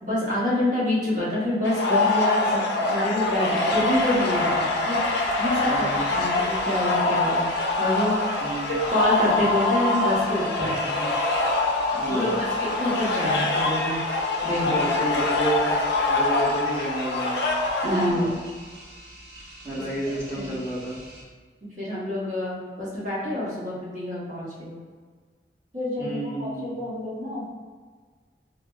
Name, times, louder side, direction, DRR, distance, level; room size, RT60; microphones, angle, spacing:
voice 1, 0.0-7.5 7.8-8.1 8.9-10.9 12.1-14.0 14.4-14.8 17.8-18.3 20.3-20.5 21.8-24.7 25.7-27.4, left 1 dB, 45° right, -8 dB, 1.1 m, -27 dB
sound 1, 1.6-18.1, left 2 dB, 75° left, 0.4 m, -24 dB
sound 2, 3.7-21.2, right 1 dB, 85° right, 0.8 m, -45 dB
voice 2, 5.6-6.0 8.4-8.7 10.9-11.1 12.0-12.3 14.5-17.4 18.1-18.3 19.6-21.0 26.0-26.8, right 1 dB, 15° right, -9 dB, 1.1 m, -30 dB
4.7 x 2.1 x 2.3 m, 1.5 s
head